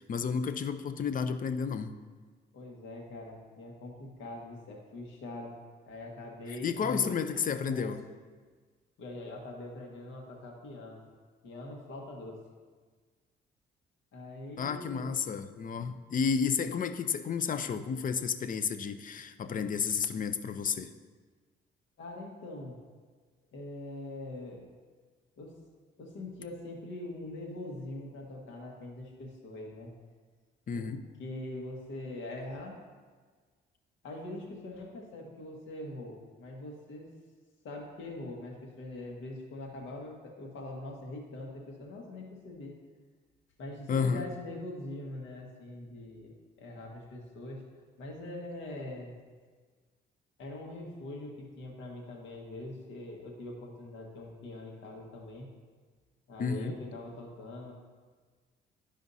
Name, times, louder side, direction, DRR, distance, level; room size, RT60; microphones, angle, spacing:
voice 1, 0.0-2.0 6.5-8.0 14.6-20.9 30.7-31.0 43.9-44.2 56.4-56.7, left 6 dB, 45° left, 10 dB, 0.5 m, -31 dB
voice 2, 2.5-5.5 5.9-7.3 7.6-7.9 9.0-11.1 11.4-12.4 14.1-15.2 22.0-22.8 23.5-24.7 25.4-25.6 26.0-29.9 30.7-30.9 31.2-32.8 34.0-37.1 37.6-42.7 43.6-47.7 48.0-49.1 50.4-55.5 56.3-57.7, left 2 dB, 75° left, 0 dB, 1.6 m, -43 dB
12.5 x 5.0 x 2.7 m, 1.5 s
cardioid pair, 90°, 20 cm